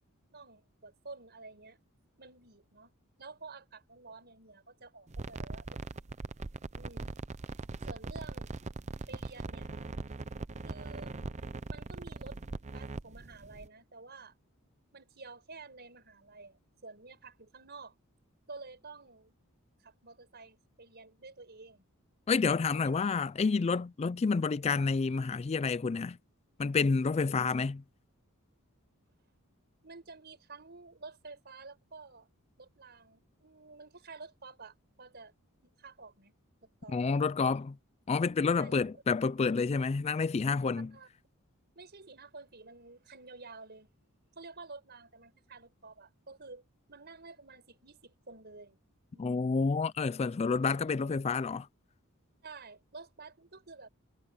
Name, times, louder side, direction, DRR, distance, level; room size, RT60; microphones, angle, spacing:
voice 1, 0.3-1.8 2.2-2.9 3.2-5.8 6.1-6.3 6.7-7.1 7.8-8.5 9.1-9.7 10.6-11.2 11.7-12.4 12.7-14.3 14.9-17.9 18.5-19.3 19.8-21.9 22.7-22.9 23.2-23.7 27.2-27.5 29.8-32.3 32.6-35.3 35.6-36.3 36.8-36.9 38.5-38.7 40.9-41.1 41.7-43.9 44.3-46.6 46.9-48.8 49.1-49.5 52.4-53.9, right 3 dB, 50° right, 5.1 m, -50 dB
sound 1, 5.1-13.7, right 3 dB, 30° right, 0.6 m, -41 dB
voice 2, 22.3-26.2 26.6-27.8 36.9-37.8 38.1-40.9 49.2-51.7, left 4 dB, 30° left, 0.3 m, -29 dB
head